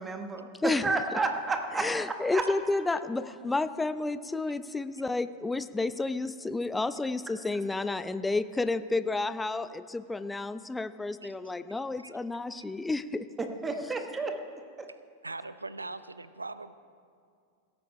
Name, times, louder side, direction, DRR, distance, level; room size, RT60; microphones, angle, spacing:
voice 1, 0.0-2.4 13.4-14.3 14.8-14.9, right 3 dB, 15° right, 5 dB, 1.1 m, -31 dB
voice 2, 1.8-13.3, left 3 dB, 10° left, 13 dB, 0.4 m, -31 dB
voice 3, 15.2-16.7, right 3 dB, 80° right, 14 dB, 0.5 m, -40 dB
17.0 x 13.5 x 3.3 m, 2.3 s
figure-of-eight pair, 90°, 0 cm